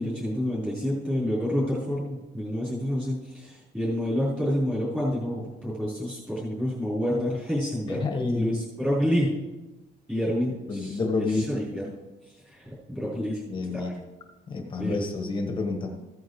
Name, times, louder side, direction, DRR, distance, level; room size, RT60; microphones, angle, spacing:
voice 1, 0.0-8.0 8.3-9.3 10.1-11.0 11.3-11.9 12.5-13.4 13.7-13.9 14.8-15.0, equal, 5° right, -11 dB, 4.3 m, -28 dB
voice 2, 7.9-8.6 10.7-11.4 13.5-14.0 14.5-16.0, left 3 dB, 25° left, 3 dB, 1.4 m, -29 dB
15.5 x 9.4 x 3.2 m, 1.1 s
cardioid pair, 170°, 18 cm